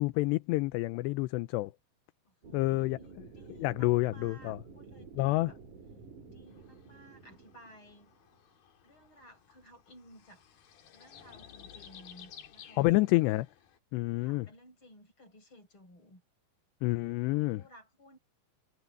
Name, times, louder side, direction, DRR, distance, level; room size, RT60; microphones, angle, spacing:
voice 1, 0.0-1.7 2.5-3.0 3.6-4.6 5.2-5.5 12.8-13.5 13.9-14.5 16.8-17.6, left 20 dB, 80° left, 2.8 m, -28 dB
voice 2, 2.3-5.6 6.3-8.1 8.8-10.4 10.9-13.3 14.2-16.2 17.3-18.2, equal, 25° left, 8.1 m, -57 dB
sound 1, 2.4-8.4, right 4 dB, 45° right, 5.4 m, -51 dB
sound 2, 6.5-13.8, left 9 dB, 60° left, 3.8 m, -55 dB
omnidirectional pair, 5.1 m